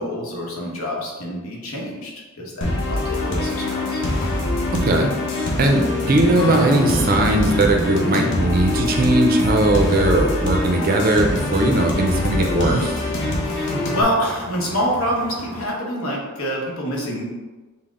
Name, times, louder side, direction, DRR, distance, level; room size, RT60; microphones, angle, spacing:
voice 1, 0.0-4.0 13.4-17.2, equal, 75° left, -2 dB, 1.0 m, -26 dB
sound 1, 2.6-14.0, left 1 dB, 55° left, 0.7 m, -23 dB
sound 2, 3.0-15.7, equal, 5° left, 0.6 m, -38 dB
voice 2, 5.6-12.9, right 1 dB, 40° right, 3 dB, 0.5 m, -19 dB
Acoustic guitar / Strum, 6.3-11.1, equal, 25° left, 1.2 m, -31 dB
5.7 x 2.1 x 3.7 m, 1.3 s
head